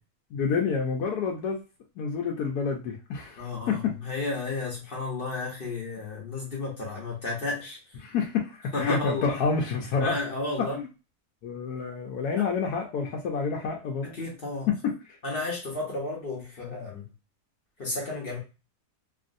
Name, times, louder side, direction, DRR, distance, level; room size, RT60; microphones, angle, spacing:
voice 1, 0.3-1.6 2.0-3.9 8.0-10.2 10.7-10.9 11.4-14.1 14.7-14.9, left 5 dB, 75° left, 0 dB, 1.1 m, -28 dB
voice 2, 3.4-7.8 8.7-9.4 10.0-10.8 14.0-14.7 15.2-17.1 17.8-18.4, left 2 dB, 45° left, -2 dB, 0.9 m, -32 dB
3.1 x 2.5 x 2.5 m, 0.30 s
omnidirectional pair, 1.7 m